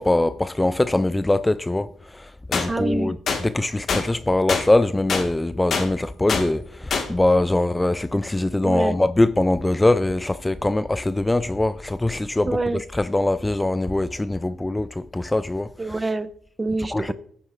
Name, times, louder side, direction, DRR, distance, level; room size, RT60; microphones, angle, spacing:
voice 1, 0.0-1.9 2.1-3.2 3.4-12.5 12.9-15.7 16.9-17.1, left 2 dB, 15° left, 0.3 m, -22 dB
sound 1, 2.5-2.7 3.3-3.4 3.9-4.0 4.5-4.6 5.1-5.2 5.7-5.9 6.3-6.4 6.9-7.1, left 5 dB, 55° left, 1.6 m, -23 dB
voice 2, 2.7-3.1 8.6-9.0 12.4-12.8 15.8-16.3 16.6-17.1, right 3 dB, 20° right, 0.7 m, -26 dB
14.5 x 8.2 x 2.5 m
cardioid pair, 90°, 0 cm